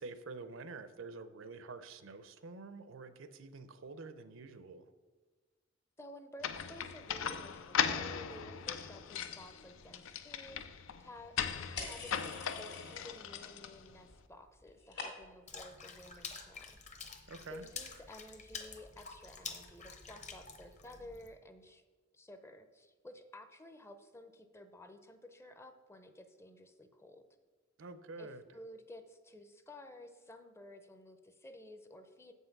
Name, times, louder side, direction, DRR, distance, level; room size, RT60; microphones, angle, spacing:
voice 1, 0.0-4.9 17.3-17.6 27.8-28.4, right 3 dB, 75° right, 12 dB, 0.6 m, -48 dB
voice 2, 6.0-11.4 11.8-17.2 17.5-21.8 22.1-27.3 28.2-32.3, left 1 dB, 15° left, 9 dB, 0.5 m, -53 dB
sound 1, 6.4-14.1, left 7 dB, 85° left, 0.5 m, -38 dB
sound 2, 11.8-13.4 13.6-14.2 14.4-15.5, left 4 dB, 60° left, 1.8 m, -46 dB
Water / Splash splatter, 15.5-21.3, left 5 dB, 35° left, 0.9 m, -48 dB
7.7 x 5.5 x 5.9 m, 1.3 s
head